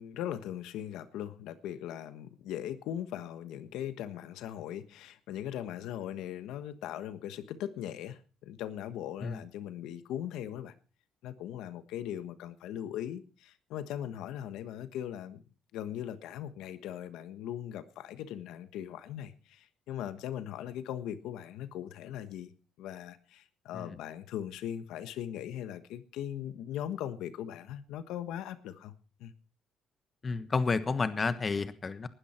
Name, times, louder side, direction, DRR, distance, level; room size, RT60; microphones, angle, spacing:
voice 1, 0.0-10.7 11.2-15.4 15.7-22.5 22.8-29.3, left 11 dB, 90° left, 12 dB, 1.3 m, -39 dB
voice 2, 30.2-32.1, left 4 dB, 30° left, 12 dB, 1.3 m, -30 dB
19.5 x 12.5 x 4.4 m, 0.36 s
cardioid pair, 115°, 0 cm